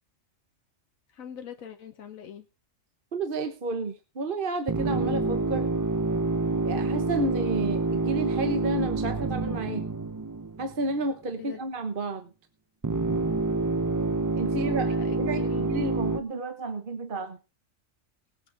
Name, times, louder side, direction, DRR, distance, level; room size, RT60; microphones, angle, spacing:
voice 1, 1.1-2.5 11.4-11.6 14.6-15.8, left 8 dB, 85° left, 6 dB, 1.5 m, -43 dB
voice 2, 3.1-5.7 6.6-9.9 10.6-12.3 14.4-14.9 15.2-17.4, right 2 dB, 45° right, 7 dB, 1.2 m, -31 dB
sound 1, 4.7-11.0 12.8-16.2, right 3 dB, 25° right, 0.4 m, -27 dB
19.5 x 8.7 x 3.9 m, 0.31 s
omnidirectional pair, 1.4 m